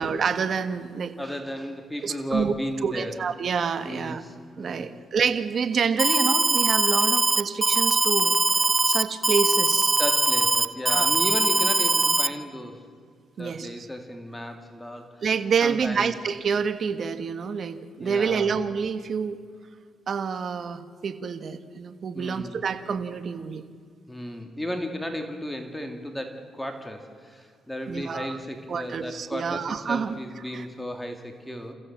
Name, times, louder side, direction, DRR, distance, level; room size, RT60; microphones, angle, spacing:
voice 1, 0.0-1.1 2.0-2.5 2.8-4.2 4.6-8.4 8.9-10.0 10.9-11.1 13.4-13.9 15.2-19.4 20.1-23.6 27.9-28.4 28.7-30.2 30.5-30.7, right 6 dB, 50° right, 10 dB, 1.5 m, -27 dB
voice 2, 1.2-3.1 3.9-5.0 10.0-12.9 13.4-15.2 15.6-16.1 18.0-18.5 22.1-22.6 24.1-31.7, equal, 5° left, 4 dB, 2.5 m, -34 dB
Alarm, 6.0-12.3, right 2 dB, 15° right, 0.9 m, -21 dB
29.0 x 15.0 x 7.5 m, 2.1 s
cardioid pair, 90°, 0 cm